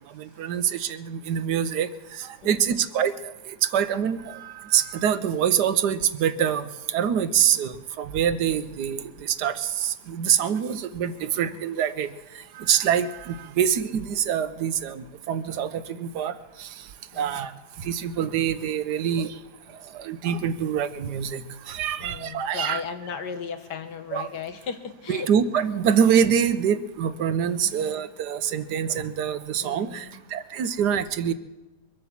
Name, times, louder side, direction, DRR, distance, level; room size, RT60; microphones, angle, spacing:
voice 1, 0.1-12.1 12.6-16.3 16.6-16.7 17.2-17.5 17.8-19.3 19.9-22.8 24.1-24.3 25.1-30.1 30.3-31.3, right 8 dB, 75° right, 12 dB, 1.4 m, -25 dB
voice 2, 2.4-2.9 7.5-7.6 11.2-11.6 17.1-17.5 22.0-25.3 27.6-27.9 29.6-30.2, left 6 dB, 85° left, 8 dB, 1.8 m, -37 dB
23.0 x 8.2 x 7.3 m, 1.1 s
omnidirectional pair, 1.8 m